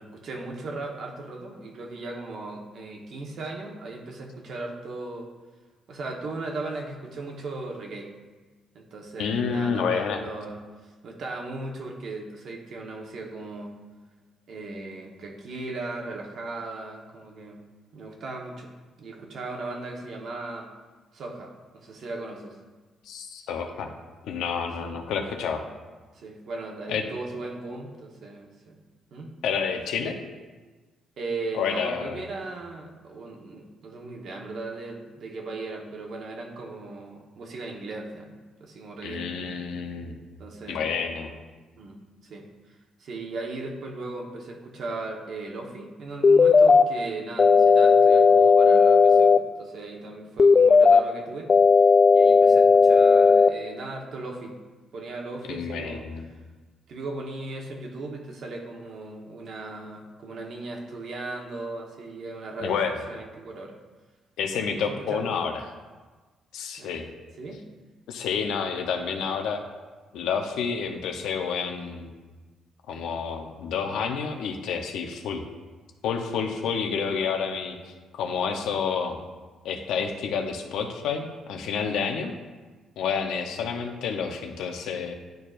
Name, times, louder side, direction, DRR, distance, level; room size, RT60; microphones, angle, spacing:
voice 1, 0.0-5.3 5.9-8.1 8.7-13.8 14.5-17.6 17.9-18.7 19.0-20.7 21.1-22.6 24.8-24.9 25.5-25.6 26.1-28.8 29.1-29.3 31.2-38.3 38.6-39.5 40.4-40.8 41.8-42.0 42.2-42.4 43.0-51.5 52.1-54.6 54.9-56.0 56.9-63.8 64.4-65.5 66.8-66.9 67.4-67.6 76.7-76.8, right 2 dB, 65° right, 1 dB, 1.2 m, -37 dB
voice 2, 9.2-10.2 23.0-23.9 24.2-25.6 26.9-27.0 29.4-30.2 31.5-32.3 39.0-40.2 40.7-41.3 55.5-56.3 62.6-62.9 64.4-65.6 66.5-67.1 68.1-69.6 70.1-72.1 72.9-75.4 76.0-79.2 79.6-82.3 83.0-85.1, left 6 dB, 85° left, 4 dB, 0.7 m, -29 dB
sound 1, 46.2-46.8 47.4-49.4 50.4-51.0 51.5-53.5, left 5 dB, 40° left, 0.3 m, -15 dB
10.5 x 4.6 x 2.5 m, 1.3 s
cardioid pair, 90°, 0 cm